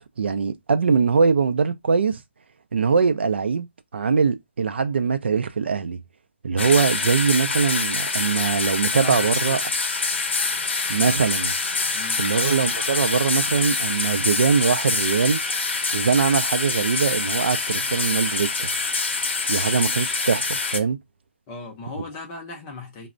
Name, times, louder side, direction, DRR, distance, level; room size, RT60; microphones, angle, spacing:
voice 1, 0.2-2.2 2.7-3.7 3.9-6.0 6.4-9.6 10.9-11.5 12.2-15.4 15.9-18.7 19.5-21.0, right 5 dB, 60° right, 0.4 m, -22 dB
sound 1, 6.6-20.8, left 4 dB, 60° left, 0.7 m, -25 dB
voice 2, 8.9-9.6 11.9-12.2 21.5-23.1, left 3 dB, 15° left, 0.5 m, -38 dB
3.2 x 2.0 x 2.4 m
hypercardioid pair, 170°, 7 cm